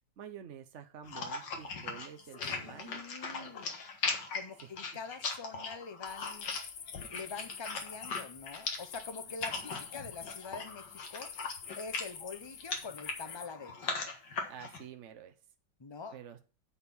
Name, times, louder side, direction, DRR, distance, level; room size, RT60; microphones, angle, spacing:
voice 1, 0.2-3.5 4.6-4.7 9.5-9.7 14.5-15.3 16.1-16.4, right 8 dB, 55° right, 0.9 m, -49 dB
sound 1, 1.0-14.8, left 4 dB, 70° left, 2.1 m, -39 dB
voice 2, 2.6-3.8 4.3-6.5 7.1-11.3 11.8-13.8 15.8-16.2, left 4 dB, 35° left, 0.4 m, -45 dB
sound 2, 6.0-13.5, left 7 dB, 55° left, 1.0 m, -48 dB
8.7 x 4.3 x 7.0 m
omnidirectional pair, 1.9 m